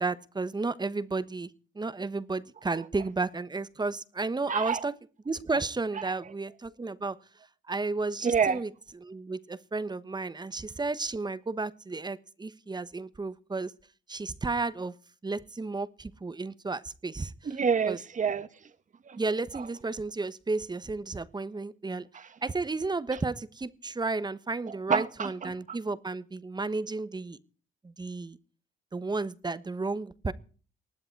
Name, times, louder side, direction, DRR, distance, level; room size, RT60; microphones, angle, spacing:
voice 1, 0.0-1.5 1.7-4.9 5.2-7.2 7.7-8.7 9.0-13.7 14.1-14.9 15.2-17.3 17.9-18.0 19.2-22.1 22.4-27.4 27.8-28.4 28.9-30.3, right 3 dB, 20° right, 1.1 m, -32 dB
voice 2, 4.5-4.8 6.0-6.1 8.2-8.6 17.4-18.7 19.0-19.2 19.5-19.6 22.1-22.3 24.7-25.8, right 6 dB, 40° right, 1.4 m, -29 dB
20.0 x 12.5 x 4.6 m
cardioid pair, 90°, 20 cm